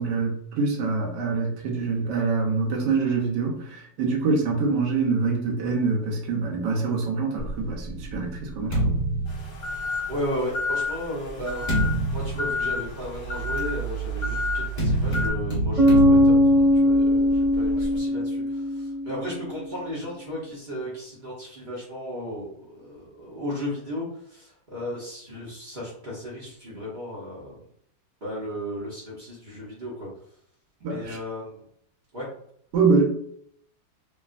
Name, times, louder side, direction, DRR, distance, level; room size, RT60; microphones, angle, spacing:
voice 1, 0.0-9.0 30.8-31.2 32.7-33.1, right 4 dB, 70° right, -1 dB, 1.3 m, -25 dB
sound 1, 7.4-10.2 10.9-18.0, right 2 dB, 35° left, 0.7 m, -28 dB
sound 2, 9.3-15.3, left 4 dB, 60° left, 1.1 m, -31 dB
voice 2, 10.1-11.7 12.1-27.6 28.2-30.1 30.8-31.6 32.1-32.3, equal, 45° right, -6 dB, 0.6 m, -35 dB
Bass guitar, 15.8-19.4, left 1 dB, ahead, 0.7 m, -20 dB
3.2 x 2.4 x 2.4 m, 0.67 s
omnidirectional pair, 2.0 m